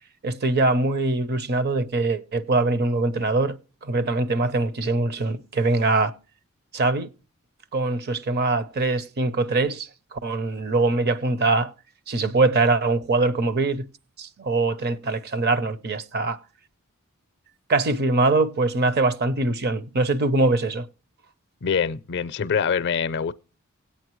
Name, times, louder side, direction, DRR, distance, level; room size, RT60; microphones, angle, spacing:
voice 1, 0.2-6.1 6.7-7.1 7.7-11.7 12.1-13.9 14.2-16.4 17.7-20.9, right 3 dB, 50° right, 0.7 m, -23 dB
voice 2, 21.6-23.3, left 6 dB, 50° left, 0.5 m, -24 dB
18.5 x 8.4 x 3.0 m
head